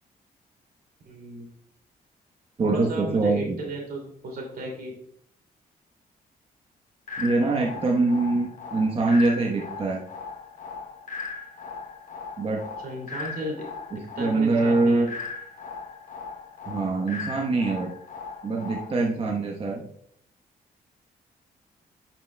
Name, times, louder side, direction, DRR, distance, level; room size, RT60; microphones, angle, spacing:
voice 1, 1.0-1.5 2.6-4.9 12.8-15.1, right 1 dB, 70° right, 1 dB, 2.6 m, -34 dB
voice 2, 2.6-3.6 7.2-10.0 12.4-12.6 14.2-15.1 16.6-17.9 18.4-19.8, right 3 dB, 35° right, -1 dB, 1.0 m, -24 dB
sound 1, 7.1-19.1, left 4 dB, 55° left, 0.9 m, -38 dB
9.9 x 5.9 x 2.2 m, 0.67 s
cardioid pair, 100°, 16 cm